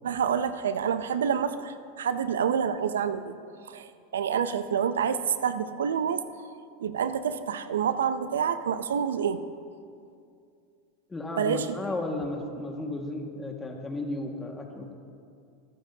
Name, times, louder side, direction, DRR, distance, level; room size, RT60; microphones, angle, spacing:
voice 1, 0.0-3.3 3.7-6.5 6.8-9.4 11.4-11.7, right 7 dB, 90° right, 12 dB, 0.5 m, -28 dB
voice 2, 11.1-14.9, left 2 dB, 15° left, 1 dB, 1.8 m, -34 dB
25.5 x 9.9 x 2.8 m, 2.4 s
hypercardioid pair, 110°, 0 cm